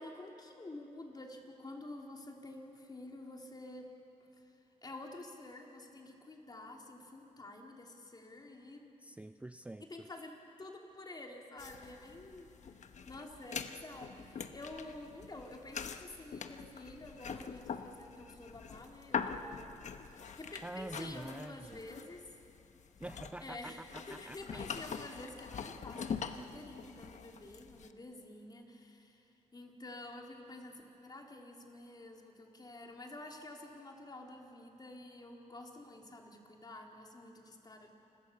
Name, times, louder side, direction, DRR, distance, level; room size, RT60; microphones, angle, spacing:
voice 1, 0.0-3.9 4.4-8.9 9.9-10.3 10.6-12.8 13.1-19.8 20.1-22.3 23.4-37.9, left 2 dB, 30° left, 1 dB, 3.6 m, -49 dB
voice 2, 9.0-10.1 20.6-21.8 23.0-24.6, right 2 dB, 10° right, 11 dB, 0.5 m, -46 dB
sound 1, 11.6-27.9, left 6 dB, 60° left, 1.2 m, -44 dB
29.0 x 21.5 x 7.1 m, 2.9 s
cardioid pair, 85°, 13 cm